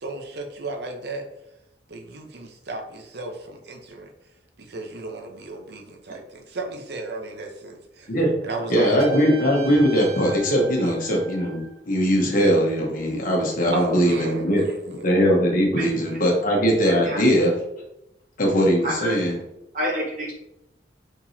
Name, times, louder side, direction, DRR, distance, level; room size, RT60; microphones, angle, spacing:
voice 1, 0.0-1.2 1.9-4.1 4.6-8.1 8.4-9.0 10.8-10.9 13.7-15.1, right 2 dB, 65° right, 3 dB, 0.7 m, -34 dB
voice 2, 8.7-14.6 14.9-17.5 18.4-19.4, equal, 50° left, -1 dB, 1.0 m, -20 dB
Trumpet, 9.0-11.8, right 7 dB, 80° right, 1.1 m, -40 dB
voice 3, 15.8-16.2 16.8-17.3 18.8-19.2 19.7-20.3, equal, 50° right, -4 dB, 1.2 m, -29 dB
4.7 x 3.7 x 2.7 m, 0.85 s
head